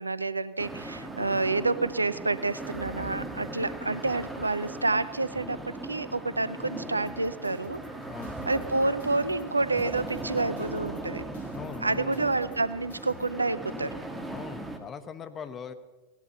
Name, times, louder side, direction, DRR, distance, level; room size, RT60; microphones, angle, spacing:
voice 1, 0.0-5.6 5.8-7.8 8.5-11.2 11.8-14.0, right 3 dB, 80° right, 16 dB, 0.5 m, -28 dB
sound 1, 0.6-14.8, right 2 dB, 10° right, 1.6 m, -38 dB
sound 2, 7.1-13.3, left 2 dB, 65° left, 1.9 m, -53 dB
voice 2, 11.5-12.2 14.3-15.7, left 6 dB, 25° left, 10 dB, 1.1 m, -40 dB
17.0 x 12.0 x 6.9 m, 1.2 s
figure-of-eight pair, 90°, 0 cm